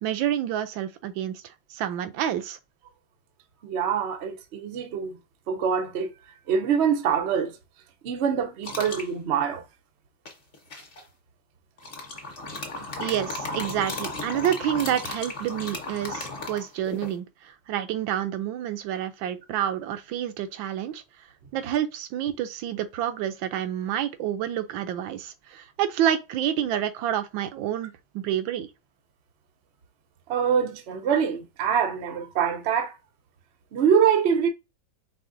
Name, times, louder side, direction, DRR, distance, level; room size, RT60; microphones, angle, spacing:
voice 1, 0.0-1.4 1.7-2.6 13.0-21.0 21.5-28.7, right 11 dB, 85° right, 1.4 m, -28 dB
voice 2, 3.6-5.2 5.5-6.1 6.5-7.5 8.0-9.6 30.3-32.9 33.7-34.5, right 7 dB, 70° right, 0.6 m, -24 dB
sound 1, 8.6-9.1 10.3-11.0 11.8-17.1, left 2 dB, 35° left, 1.1 m, -35 dB
4.9 x 3.5 x 2.5 m
omnidirectional pair, 2.1 m